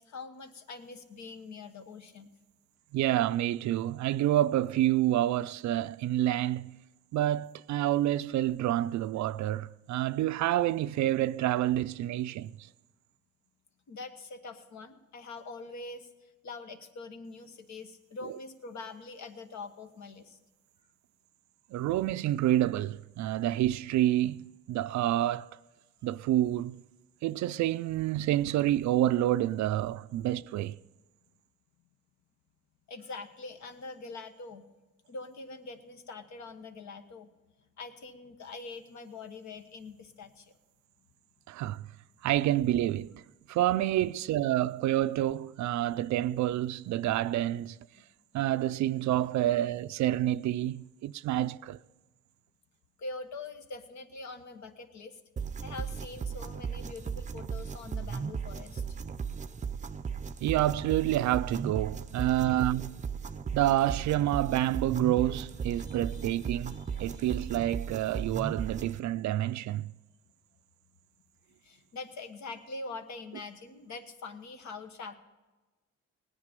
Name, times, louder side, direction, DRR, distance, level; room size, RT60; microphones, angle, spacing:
voice 1, 0.0-2.3 13.9-20.4 32.9-34.6 35.1-37.3 37.8-40.5 49.4-49.5 53.0-55.2 55.6-59.0 65.7-67.3 71.6-75.1, left 3 dB, 65° left, 1.3 m, -44 dB
voice 2, 2.9-6.8 7.1-12.6 18.2-18.3 21.7-25.5 26.0-26.8 27.2-30.8 41.5-41.9 42.2-47.8 48.3-51.8 60.4-63.0 63.5-69.9, right 13 dB, 70° right, 0.4 m, -28 dB
sound 1, 55.4-69.0, right 6 dB, 25° right, 0.6 m, -36 dB
17.5 x 9.8 x 5.2 m
cardioid pair, 90°, 30 cm